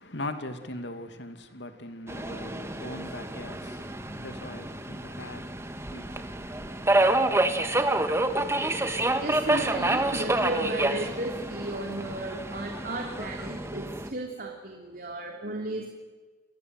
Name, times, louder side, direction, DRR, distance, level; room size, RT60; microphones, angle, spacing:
voice 1, 0.0-7.2, left 1 dB, 75° left, 2.6 m, -41 dB
Subway metro underground, 2.1-14.1, right 2 dB, 15° right, 1.7 m, -28 dB
voice 2, 9.2-15.9, right 1 dB, 50° right, 3.3 m, -34 dB
29.5 x 23.0 x 7.9 m
head